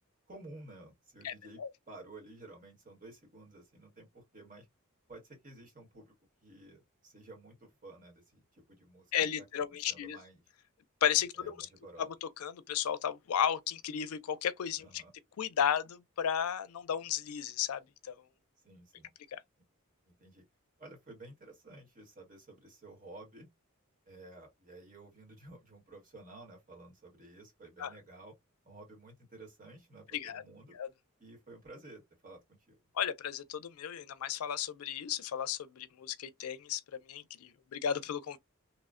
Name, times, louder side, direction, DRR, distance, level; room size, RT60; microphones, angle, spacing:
voice 1, 0.3-1.6 1.9-4.7 5.1-6.1 6.4-10.4 11.4-12.1 14.8-15.1 18.6-19.1 20.1-20.4 20.8-23.5 24.1-28.3 28.6-30.8 31.2-32.8, right 2 dB, 40° right, 1.4 m, -53 dB
voice 2, 9.1-10.2 11.0-11.7 12.0-15.0 15.4-18.1 19.3-19.4 27.8-27.9 30.1-30.4 30.8-30.9 32.9-38.4, left 9 dB, 90° left, 0.4 m, -34 dB
2.9 x 2.1 x 2.4 m
head